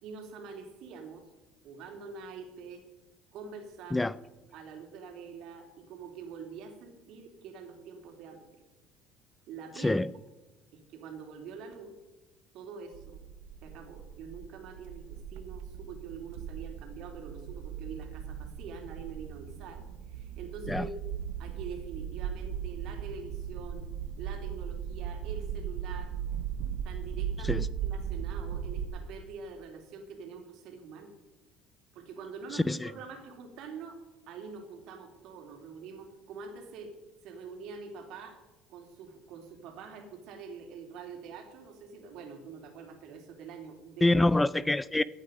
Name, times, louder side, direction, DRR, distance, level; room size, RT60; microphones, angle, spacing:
voice 1, 0.0-1.2 1.6-2.8 3.3-4.1 4.5-8.6 9.5-10.0 10.7-11.9 12.5-13.2 13.6-20.9 21.4-23.9 24.2-26.2 26.8-31.1 31.9-34.0 34.3-36.9 37.2-38.4 38.7-44.2, right 5 dB, 65° right, 3.2 m, -45 dB
voice 2, 9.8-10.1 20.7-20.9 27.4-27.7 32.5-32.9 44.0-45.0, left 2 dB, 10° left, 0.4 m, -26 dB
sound 1, 12.9-28.9, right 8 dB, 90° right, 1.1 m, -38 dB
16.5 x 9.2 x 5.3 m
supercardioid pair, 110°, 0 cm